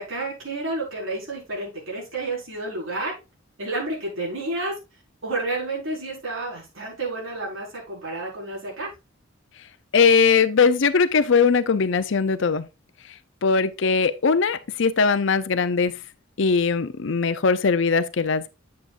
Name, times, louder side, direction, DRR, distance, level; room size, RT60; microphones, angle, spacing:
voice 1, 0.0-3.2 3.6-4.8 5.2-8.9, right 2 dB, 75° right, 4.8 m, -30 dB
voice 2, 9.9-12.6 13.4-15.9 16.4-18.5, left 5 dB, 65° left, 0.6 m, -20 dB
8.5 x 8.4 x 2.5 m
head